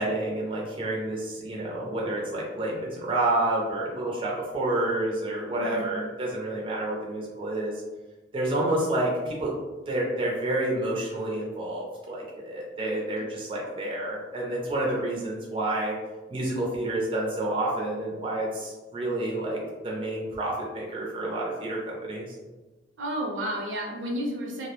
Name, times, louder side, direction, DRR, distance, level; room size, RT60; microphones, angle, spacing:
voice 1, 0.0-7.7 8.3-9.5 9.9-16.0 16.3-22.4, right 1 dB, 25° right, -4 dB, 0.4 m, -29 dB
voice 2, 5.5-5.9 23.0-24.7, equal, 75° right, -1 dB, 0.6 m, -32 dB
2.4 x 2.0 x 2.8 m, 1.2 s
head